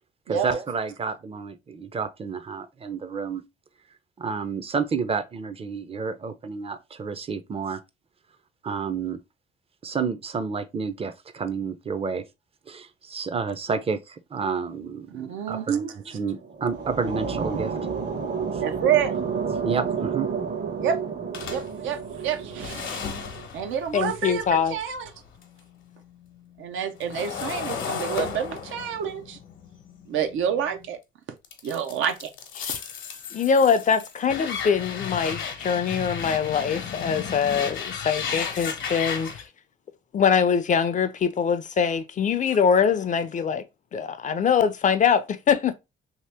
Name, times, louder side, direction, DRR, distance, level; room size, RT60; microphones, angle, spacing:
voice 1, 0.3-3.4 4.2-7.8 8.6-9.2 9.8-12.2 12.7-17.7 18.5-18.6 19.6-20.3, right 5 dB, 30° right, 0.5 m, -30 dB
voice 2, 15.1-15.9 18.6-19.1 20.8-21.2 21.5-23.0 23.5-25.1 26.6-29.4 30.1-31.0 31.6-32.3, right 8 dB, 80° right, 0.6 m, -28 dB
sound 1, 16.3-23.5, right 6 dB, 60° right, 1.0 m, -31 dB
sound 2, 21.3-25.6 26.0-30.9 31.4-39.4, left 6 dB, 75° left, 0.9 m, -34 dB
voice 3, 23.9-24.8 32.6-32.7 33.3-39.3 40.1-43.6 43.9-45.8, left 6 dB, 40° left, 0.4 m, -23 dB
2.9 x 2.8 x 3.3 m
cardioid pair, 90°, 20 cm